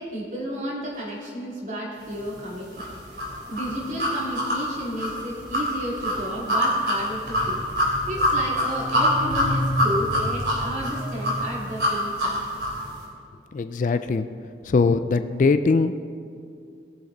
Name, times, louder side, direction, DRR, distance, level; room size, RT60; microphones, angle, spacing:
voice 1, 0.0-7.6 8.1-12.4, equal, 40° right, -4 dB, 2.5 m, -32 dB
sound 1, 2.8-12.8, equal, 60° right, 3.3 m, -25 dB
voice 2, 13.5-14.3 14.7-15.9, left 4 dB, 45° left, 11 dB, 0.3 m, -21 dB
19.5 x 7.0 x 3.9 m, 2.4 s
head